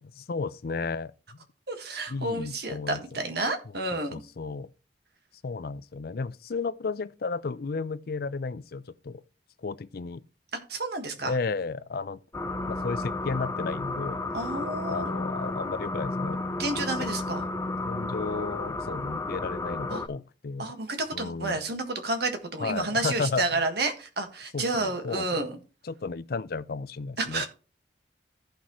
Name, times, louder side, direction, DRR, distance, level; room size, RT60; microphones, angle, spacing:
voice 1, 0.0-1.1 2.1-3.2 4.1-4.7 5.4-9.2 9.6-10.2 11.2-12.2 12.7-14.3 14.9-16.4 17.0-17.1 17.9-20.7 21.1-21.6 22.6-23.6 24.5-25.5 25.8-27.4, left 4 dB, 55° left, 0.5 m, -33 dB
voice 2, 1.7-4.2 10.7-11.3 14.3-15.1 16.6-17.5 19.9-20.0 20.6-25.6 27.2-27.5, right 2 dB, 60° right, 1.7 m, -30 dB
sound 1, 12.3-20.1, left 2 dB, 15° left, 0.6 m, -32 dB
14.5 x 5.7 x 3.1 m
head